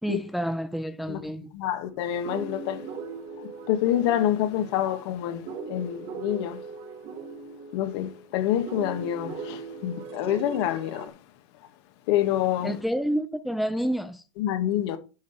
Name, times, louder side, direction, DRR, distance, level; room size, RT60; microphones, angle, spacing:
voice 1, 0.0-1.5 12.6-14.2, equal, ahead, 0.7 m, -29 dB
voice 2, 1.5-2.9 3.4-6.6 7.7-11.1 12.1-12.8 14.4-15.0, left 11 dB, 60° left, 1.9 m, -27 dB
sound 1, 1.8-11.1, right 5 dB, 40° right, 2.1 m, -39 dB
10.5 x 5.2 x 6.0 m
supercardioid pair, 130°, 16 cm